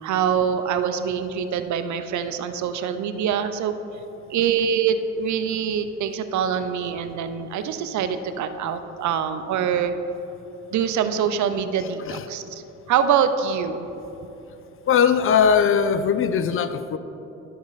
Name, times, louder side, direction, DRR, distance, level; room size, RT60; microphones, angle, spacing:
voice 1, 0.0-3.7 4.3-9.9 10.7-12.6 12.9-13.9, right 7 dB, 70° right, 10 dB, 0.6 m, -24 dB
voice 2, 14.9-17.0, left 7 dB, 45° left, 12 dB, 0.4 m, -20 dB
11.5 x 5.2 x 4.0 m, 3.0 s
cardioid pair, 90°, 30 cm